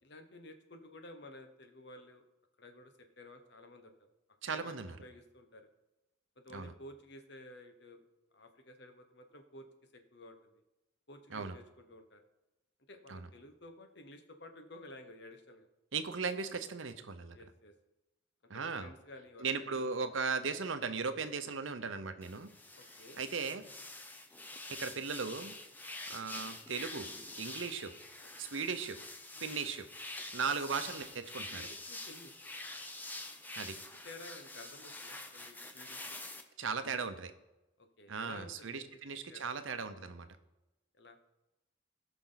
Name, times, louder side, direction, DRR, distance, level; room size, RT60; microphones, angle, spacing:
voice 1, 0.0-2.2 2.6-3.9 4.5-5.7 6.4-8.0 8.3-9.7 9.9-10.6 11.1-12.2 12.9-15.7 17.3-17.7 18.5-19.9 20.4-20.6 22.7-23.2 26.9-27.1 28.2-28.5 29.3-29.6 31.5-32.4 33.5-36.2 36.8-37.0 37.8-39.5 41.0-41.2, left 1 dB, 60° left, 6 dB, 1.2 m, -53 dB
voice 2, 4.4-5.0 6.5-6.7 11.3-11.6 13.1-13.3 15.9-17.4 18.5-18.9 19.4-22.5 23.2-23.6 24.7-25.5 26.1-27.1 27.3-27.9 28.4-29.0 29.4-29.9 30.3-31.7 33.6-33.8 36.6-37.3 38.1-40.3, right 5 dB, 75° right, 10 dB, 0.8 m, -37 dB
sound 1, 22.2-36.4, left 2 dB, 10° left, 0.7 m, -46 dB
17.5 x 5.9 x 4.0 m, 1.0 s
head